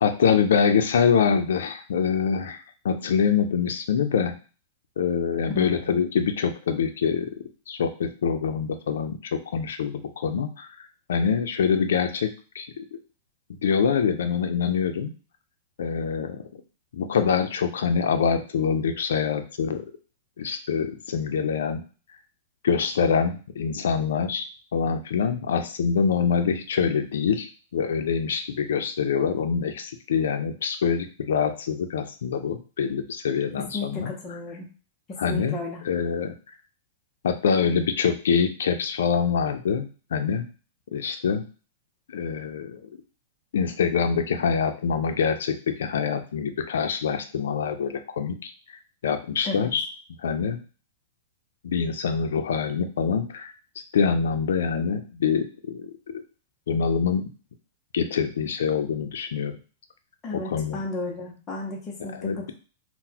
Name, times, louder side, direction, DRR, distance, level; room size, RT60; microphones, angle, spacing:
voice 1, 0.0-4.4 5.0-7.3 7.7-12.3 12.5-13.0 13.6-15.1 15.8-16.6 16.9-19.9 20.4-21.8 22.6-24.5 24.7-34.1 35.2-35.6 35.8-36.3 37.2-40.4 40.9-41.4 42.1-42.8 43.5-48.5 49.0-49.9 50.2-50.6 51.6-53.5 53.9-55.9 56.7-57.3 57.9-59.5 60.3-60.8 62.0-62.5, left 6 dB, 90° left, 7 dB, 0.4 m, -25 dB
voice 2, 33.6-34.7 35.1-35.8 49.4-49.7 60.2-62.5, left 2 dB, 15° left, -2 dB, 0.6 m, -34 dB
3.8 x 2.1 x 2.8 m, 0.37 s
supercardioid pair, 170°, 0 cm